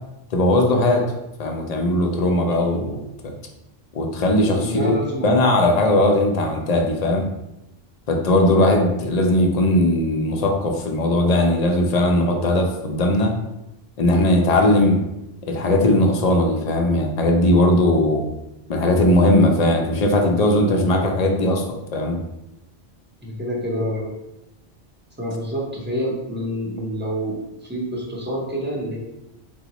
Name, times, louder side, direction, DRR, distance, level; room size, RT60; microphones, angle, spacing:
voice 1, 0.3-1.1 1.4-3.0 3.9-5.0 5.2-7.2 8.1-13.3 14.0-15.0 15.4-18.2 18.7-22.2, left 1 dB, 55° left, 2 dB, 0.5 m, -18 dB
voice 2, 4.6-5.7 23.2-24.1 25.2-29.0, equal, 15° right, -4 dB, 0.6 m, -27 dB
3.8 x 2.1 x 2.9 m, 0.90 s
omnidirectional pair, 1.0 m